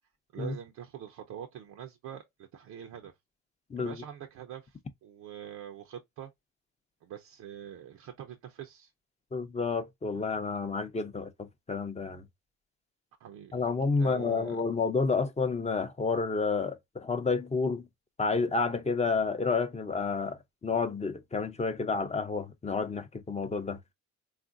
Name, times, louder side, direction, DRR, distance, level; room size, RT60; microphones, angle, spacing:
voice 1, 0.3-3.1 3.8-6.3 7.0-8.9 13.2-13.7 14.0-14.6, right 9 dB, 75° right, 0.6 m, -44 dB
voice 2, 9.3-12.2 13.5-17.8 18.2-23.8, left 4 dB, 20° left, 0.5 m, -30 dB
3.6 x 2.5 x 2.4 m
cardioid pair, 90°, 30 cm